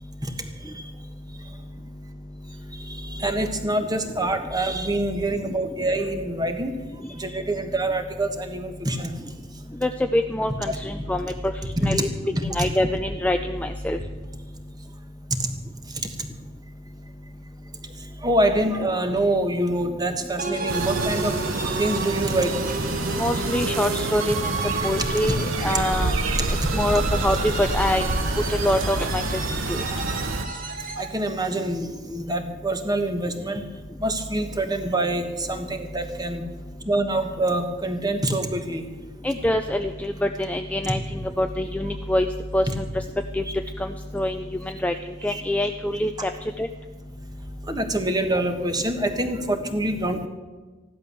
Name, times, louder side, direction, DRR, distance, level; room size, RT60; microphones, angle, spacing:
voice 1, 2.7-6.7 7.1-9.1 10.7-10.8 11.8-11.9 12.4-12.5 18.2-21.3 21.8-22.5 24.8-25.1 29.9-30.1 31.0-33.6 34.0-36.4 36.8-38.8 45.3-45.4 47.7-50.3, right 1 dB, 20° right, 7 dB, 1.3 m, -25 dB
voice 2, 9.8-11.3 11.8-12.1 12.4-14.0 23.2-26.1 26.5-28.0 28.5-29.2 29.7-29.8 39.2-42.3 42.5-42.8 43.3-43.4 43.8-44.9 45.2-46.3 46.6-46.7, left 1 dB, 5° left, 6 dB, 0.4 m, -25 dB
sound 1, 20.4-31.1, right 3 dB, 40° right, 1.6 m, -31 dB
sound 2, 20.7-30.4, right 2 dB, 65° right, 1.0 m, -28 dB
15.0 x 11.5 x 6.8 m, 1.3 s
head